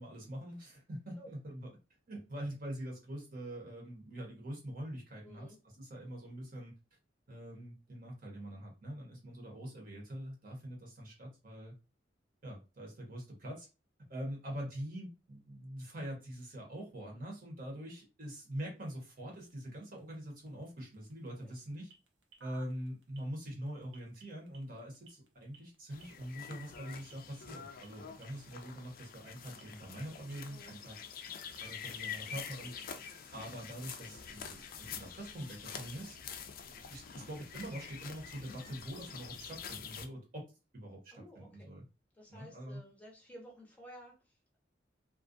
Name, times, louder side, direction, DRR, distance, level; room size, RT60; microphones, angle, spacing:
voice 1, 0.0-1.7 2.1-5.5 5.8-6.7 7.3-11.7 12.4-13.7 14.1-21.9 22.4-31.0 31.6-32.7 33.3-36.2 36.6-40.5 40.7-41.8 42.3-42.8, equal, 50° right, -1 dB, 0.9 m, -44 dB
voice 2, 5.2-5.6 21.4-21.5 30.5-30.7 41.1-41.7 42.1-44.6, equal, 10° left, -2 dB, 0.6 m, -54 dB
sound 1, 18.2-35.6, right 4 dB, 75° right, 0.7 m, -66 dB
sound 2, 25.9-40.1, left 7 dB, 50° left, 0.3 m, -47 dB
2.4 x 2.2 x 2.5 m, 0.29 s
head